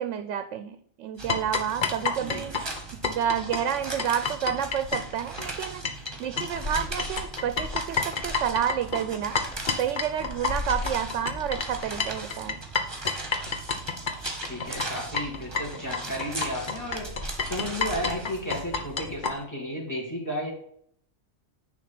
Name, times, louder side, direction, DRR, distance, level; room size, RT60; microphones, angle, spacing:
voice 1, 0.0-2.5 3.0-5.8 6.2-9.4 9.8-12.6, right 9 dB, 85° right, 10 dB, 0.9 m, -29 dB
sound 1, 1.2-19.2, right 3 dB, 20° right, 1.4 m, -39 dB
sound 2, 1.3-6.1 6.4-19.3, left 4 dB, 45° left, 1.0 m, -30 dB
voice 2, 14.4-20.5, equal, 15° left, -1 dB, 2.6 m, -33 dB
10.0 x 3.5 x 5.9 m, 0.65 s
omnidirectional pair, 1.2 m